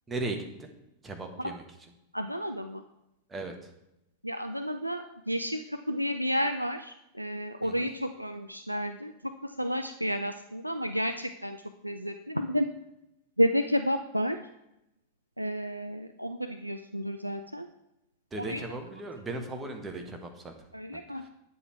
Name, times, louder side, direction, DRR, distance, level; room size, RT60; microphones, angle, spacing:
voice 1, 0.1-0.7 1.0-1.6 3.3-3.7 7.6-7.9 18.3-20.5 20.9-21.3, right 2 dB, 15° right, 4 dB, 1.5 m, -37 dB
voice 2, 2.1-2.8 4.2-11.6 11.8-12.7 13.4-14.4 15.4-17.7 18.4-18.6 20.7-21.2, equal, 90° right, 7 dB, 0.4 m, -31 dB
9.3 x 7.1 x 4.6 m, 0.88 s
figure-of-eight pair, 90°, 0 cm